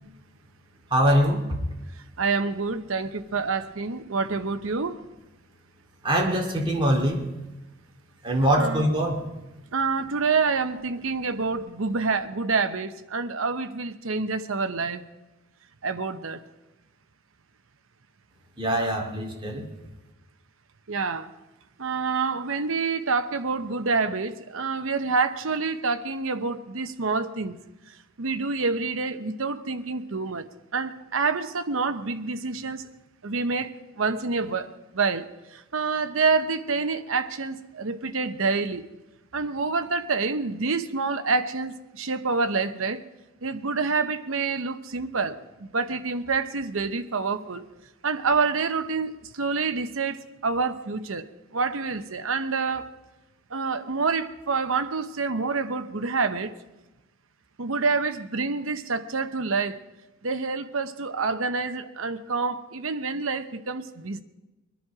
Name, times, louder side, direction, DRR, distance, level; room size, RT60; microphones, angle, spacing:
voice 1, 0.9-1.4 6.0-7.2 8.2-9.2 18.6-19.7, equal, 25° right, 2.4 m, -23 dB
voice 2, 2.2-5.0 8.6-8.9 9.7-15.0 15.8-16.4 20.9-21.3 21.8-27.6 28.2-30.5 30.7-32.8 33.2-35.3 35.7-38.8 39.3-43.0 43.4-45.4 45.7-47.6 48.0-52.9 53.5-56.5 57.6-59.8 60.2-64.2, right 4 dB, 65° right, 0.9 m, -27 dB
22.5 x 10.5 x 4.8 m
head